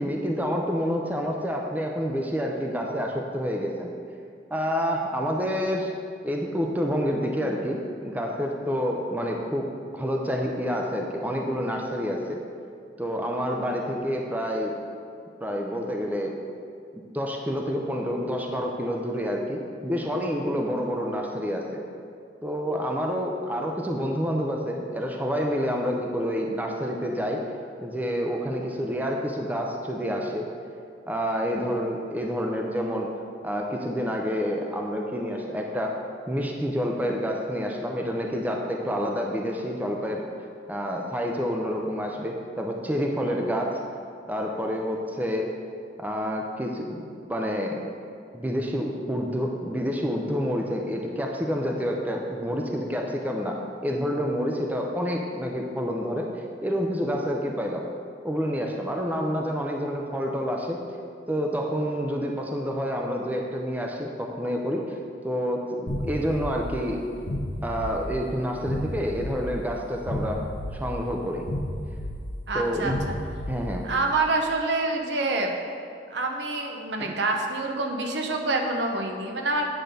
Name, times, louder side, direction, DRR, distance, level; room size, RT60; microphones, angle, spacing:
voice 1, 0.0-3.9 4.5-5.9 6.2-12.4 13.0-14.8 15.4-16.3 16.9-21.8 22.4-27.4 27.8-30.5 31.1-33.1 33.4-36.0 36.3-40.3 40.7-43.8 44.3-45.5 46.0-47.8 48.3-56.3 56.6-57.9 58.2-60.8 61.3-64.8 65.2-67.0 67.6-70.4 70.7-71.4 72.5-73.0 73.5-73.9 77.0-77.1, equal, 10° right, 0 dB, 0.6 m, -28 dB
sound 1, 65.9-74.1, left 1 dB, 75° left, 0.8 m, -33 dB
voice 2, 72.5-73.2 73.8-75.5 76.1-79.7, right 2 dB, 70° right, 2 dB, 0.9 m, -27 dB
8.8 x 3.8 x 6.7 m, 2.3 s
head